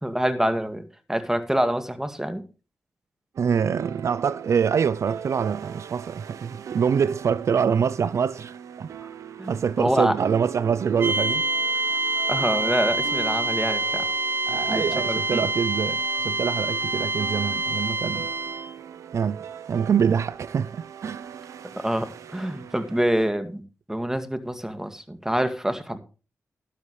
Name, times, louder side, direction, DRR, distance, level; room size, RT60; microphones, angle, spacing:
voice 1, 0.0-0.8 1.1-2.4 9.4-10.1 12.3-14.0 14.7-15.4 21.8-23.6 23.9-26.0, equal, 10° right, 2.1 m, -26 dB
sound 1, 3.3-23.3, right 8 dB, 85° right, 0.9 m, -40 dB
voice 2, 3.4-8.9 9.5-11.4 14.5-18.3 19.1-19.4 19.7-21.3, right 7 dB, 70° right, 0.4 m, -25 dB
sound 2, 11.0-18.7, right 2 dB, 45° right, 0.9 m, -26 dB
12.5 x 12.0 x 3.2 m
cardioid pair, 60°, 5 cm